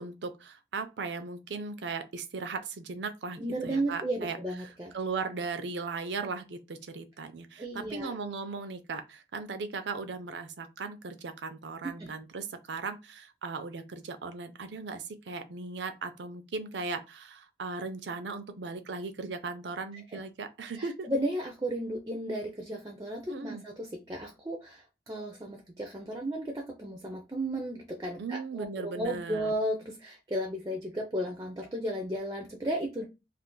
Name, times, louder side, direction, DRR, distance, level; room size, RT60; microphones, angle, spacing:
voice 1, 0.0-21.1 23.3-23.6 28.2-29.5, right 4 dB, 85° right, 0.5 m, -37 dB
voice 2, 3.4-4.9 7.6-8.1 11.8-12.1 20.1-20.2 20.8-33.1, right 1 dB, 20° right, 0.4 m, -34 dB
2.5 x 2.4 x 3.7 m
head